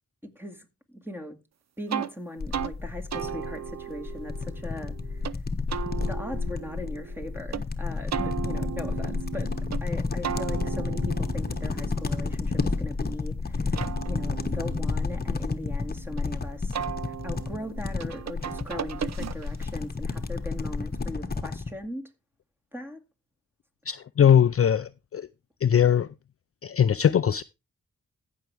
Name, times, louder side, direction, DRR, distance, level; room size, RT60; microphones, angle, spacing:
voice 1, 0.2-1.4 1.8-5.4 6.0-9.5 9.8-16.8 17.1-22.1 22.7-23.0, left 1 dB, 5° right, 2.0 m, -39 dB
sound 1, 1.9-2.1 2.5-2.7 3.1-5.4 5.7-7.6 8.1-9.8 10.2-13.1 13.5-16.2 16.7-19.7, right 9 dB, 50° right, 0.6 m, -36 dB
sound 2, 2.4-21.7, left 4 dB, 30° left, 1.2 m, -31 dB
voice 2, 23.9-25.3 25.6-26.1 26.6-27.4, left 9 dB, 45° left, 0.4 m, -21 dB
15.0 x 6.1 x 3.3 m
cardioid pair, 50°, 34 cm